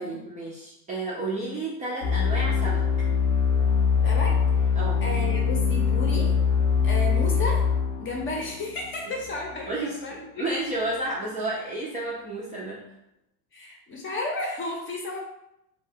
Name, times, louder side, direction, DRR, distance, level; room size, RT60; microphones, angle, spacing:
voice 1, 0.0-2.9 4.8-5.0 9.7-12.8, right 2 dB, 15° right, -6 dB, 0.4 m, -31 dB
sound 1, 2.0-9.5, left 6 dB, 85° left, 0.8 m, -23 dB
voice 2, 4.0-4.7 5.0-6.3 6.8-7.6 8.0-10.5 13.5-15.2, left 2 dB, 25° left, 0 dB, 0.7 m, -33 dB
2.7 x 2.0 x 3.5 m, 0.83 s
hypercardioid pair, 95°, 47 cm